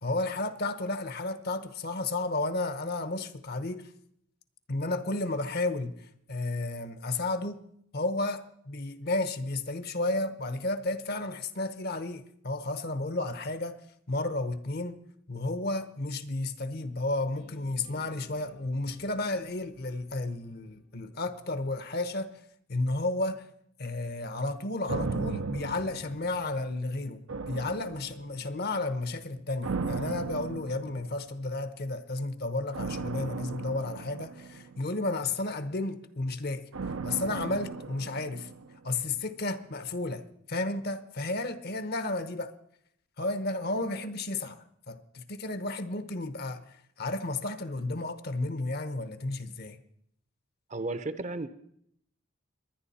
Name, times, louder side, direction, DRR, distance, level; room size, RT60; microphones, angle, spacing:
voice 1, 0.0-3.9 4.7-5.9 6.3-7.6 7.9-13.8 14.1-15.0 15.3-22.4 22.7-23.5 23.8-36.6 37.0-38.5 38.8-42.5 43.2-49.8, left 2 dB, 50° left, 0.9 m, -32 dB
sound 1, 17.4-21.4, left 3 dB, 85° left, 6.5 m, -57 dB
sound 2, 24.9-26.8 27.3-28.5 29.6-31.3 32.7-35.1 36.7-38.9 39.2-39.3, right 4 dB, 90° right, 0.7 m, -36 dB
voice 2, 50.7-51.5, right 2 dB, 35° right, 0.7 m, -33 dB
22.0 x 10.0 x 4.2 m
head